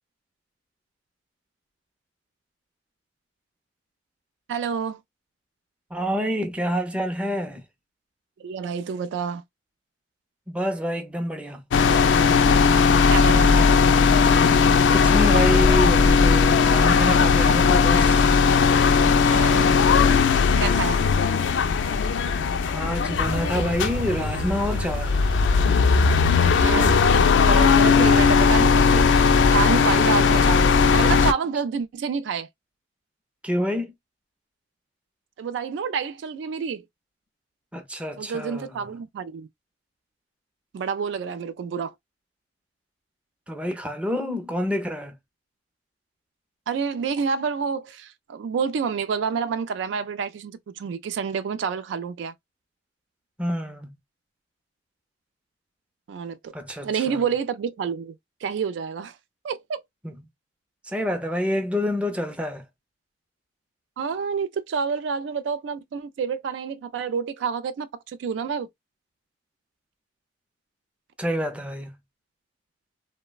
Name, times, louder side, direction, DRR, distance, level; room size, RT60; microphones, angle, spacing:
voice 1, 4.5-5.0 8.4-9.4 13.1-13.7 19.2-19.8 20.6-21.1 26.6-27.0 27.4-32.5 35.4-36.8 38.2-39.5 40.7-41.9 46.7-52.3 56.1-56.5 56.8-58.1 58.4-59.2 59.4-59.8 64.0-68.7, right 6 dB, 70° right, 0.3 m, -28 dB
voice 2, 5.9-7.6 10.5-11.6 14.9-18.3 22.7-25.2 33.4-33.9 37.7-38.9 43.5-45.1 53.4-53.9 56.5-57.2 60.0-60.2 60.9-62.6 71.2-71.9, equal, 5° right, 0.5 m, -27 dB
sound 1, 11.7-31.3, left 5 dB, 75° left, 0.3 m, -18 dB
sound 2, 23.1-29.5, right 1 dB, 90° right, 0.9 m, -31 dB
3.1 x 2.1 x 2.2 m
head